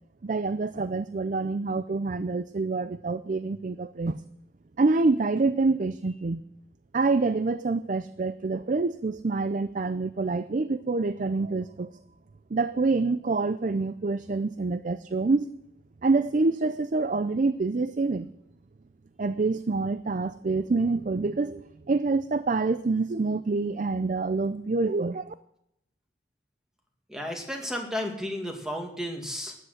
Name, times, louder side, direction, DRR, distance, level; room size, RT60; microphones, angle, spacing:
voice 1, 0.2-4.2 4.8-6.4 6.9-11.9 12.5-15.5 16.0-18.3 19.2-25.3, right 3 dB, 45° right, 14 dB, 0.4 m, -26 dB
voice 2, 27.1-29.6, left 1 dB, 5° right, 2 dB, 2.1 m, -33 dB
13.5 x 10.0 x 8.0 m, 0.79 s
head